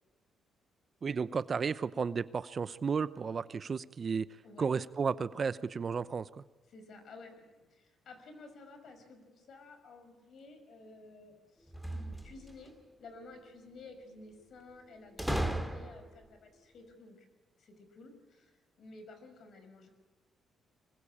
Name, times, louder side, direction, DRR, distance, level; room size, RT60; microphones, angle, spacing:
voice 1, 1.0-4.3 4.6-6.3, right 5 dB, 40° right, 16 dB, 0.7 m, -33 dB
voice 2, 6.7-17.3 17.6-19.9, left 3 dB, 60° left, 8 dB, 5.6 m, -53 dB
sound 1, 11.7-12.7 15.2-16.2, right 1 dB, ahead, 2.4 m, -35 dB
24.5 x 21.5 x 8.7 m, 1.2 s
cardioid pair, 90°, 0 cm